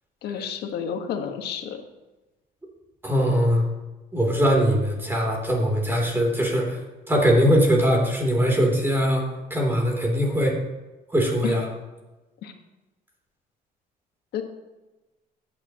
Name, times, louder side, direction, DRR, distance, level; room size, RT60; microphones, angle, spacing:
voice 1, 0.2-1.8 11.4-11.6 12.4-12.5 14.3-14.4, left 8 dB, 70° left, 4 dB, 1.6 m, -30 dB
voice 2, 3.0-3.7 4.1-6.8 7.1-10.6 11.1-11.6, equal, 15° right, -1 dB, 3.3 m, -21 dB
15.0 x 9.6 x 3.0 m, 1.1 s
cardioid pair, 110°, 17 cm